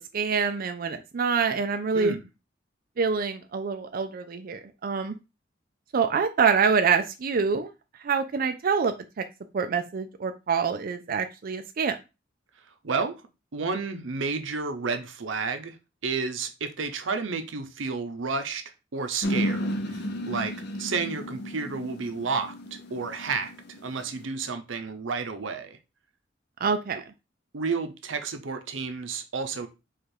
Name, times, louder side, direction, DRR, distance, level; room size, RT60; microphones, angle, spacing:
voice 1, 0.1-2.2 3.0-5.1 5.9-7.7 8.0-9.2 9.5-12.0 26.6-27.0, right 5 dB, 50° right, 0.4 m, -26 dB
voice 2, 13.5-15.8 16.0-23.5 23.8-25.8 27.5-29.7, right 4 dB, 90° right, 0.7 m, -31 dB
sound 1, 19.2-24.2, equal, 60° left, 0.8 m, -32 dB
4.9 x 2.4 x 4.4 m
head